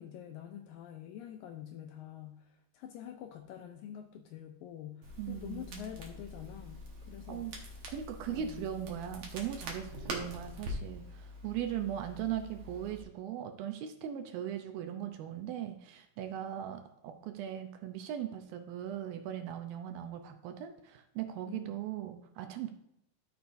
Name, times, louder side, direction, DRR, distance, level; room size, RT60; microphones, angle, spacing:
voice 1, 0.0-7.8 8.3-8.7 21.5-21.8, left 10 dB, 80° left, 5 dB, 2.1 m, -47 dB
Crackle, 5.0-13.0, equal, 55° right, 2.0 m, -44 dB
voice 2, 5.2-5.8 7.3-7.5 7.9-22.7, right 10 dB, 75° right, 6 dB, 2.4 m, -39 dB
12.5 x 6.5 x 2.6 m, 0.76 s
omnidirectional pair, 4.5 m